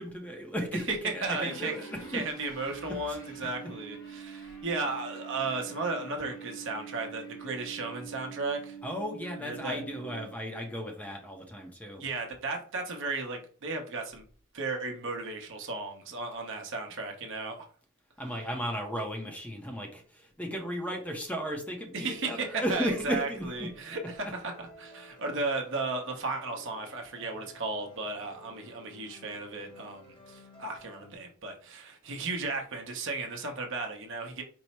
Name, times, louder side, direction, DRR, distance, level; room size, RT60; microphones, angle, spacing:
voice 1, 0.0-1.9 2.1-2.2 3.1-3.2 8.8-12.0 18.2-23.7, equal, 5° left, 0.6 m, -35 dB
voice 2, 0.7-1.7 2.1-8.8 9.4-9.8 12.0-14.2 14.5-17.7 21.9-24.5 24.8-34.4, right 3 dB, 60° right, 0.8 m, -35 dB
sound 1, 1.2-10.7, right 5 dB, 60° left, 1.1 m, -45 dB
sound 2, 23.4-31.2, equal, 25° left, 1.0 m, -54 dB
4.6 x 2.1 x 4.1 m
head